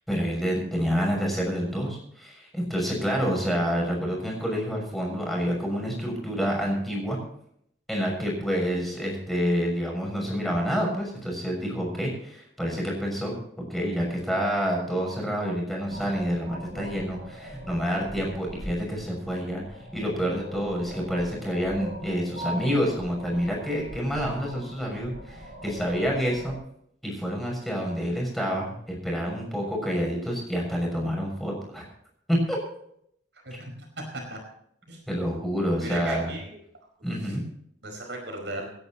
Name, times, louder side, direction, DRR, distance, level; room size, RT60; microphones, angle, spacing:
voice 1, 0.1-7.2 7.9-26.5 27.0-31.8 32.3-32.6 35.1-36.3 37.0-37.4, equal, ahead, -1 dB, 6.5 m, -28 dB
sound 1, 15.9-26.6, equal, 45° right, 6.1 m, -41 dB
voice 2, 33.4-34.4 34.9-35.0 35.8-36.6 37.2-37.4 37.8-38.7, right 1 dB, 70° right, 2 dB, 4.9 m, -36 dB
28.0 x 11.0 x 3.0 m, 0.71 s
head